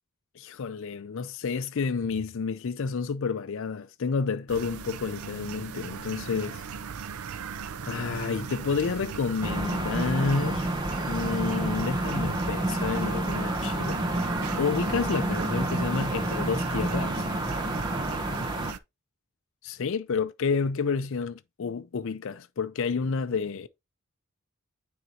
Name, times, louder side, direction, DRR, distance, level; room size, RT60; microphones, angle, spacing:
voice 1, 0.4-6.6 7.8-10.7 11.0-14.0 14.6-17.2 19.6-23.7, left 5 dB, 60° left, 0.4 m, -30 dB
sound 1, 4.5-18.8, right 6 dB, 80° right, 0.5 m, -38 dB
sound 2, 9.4-18.7, right 1 dB, 20° right, 0.8 m, -29 dB
9.4 x 3.9 x 2.8 m
head